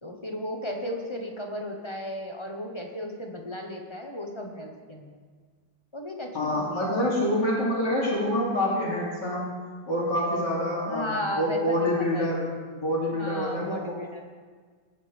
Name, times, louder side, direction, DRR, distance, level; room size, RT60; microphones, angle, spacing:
voice 1, 0.0-5.2 5.9-7.1 10.6-12.3 13.1-14.2, left 1 dB, 20° left, 2 dB, 1.1 m, -35 dB
voice 2, 6.3-9.5 9.9-11.1 11.4-12.5 12.7-13.8, left 1 dB, 80° left, -5 dB, 3.7 m, -26 dB
20.0 x 9.2 x 3.6 m, 1.5 s
omnidirectional pair, 1.9 m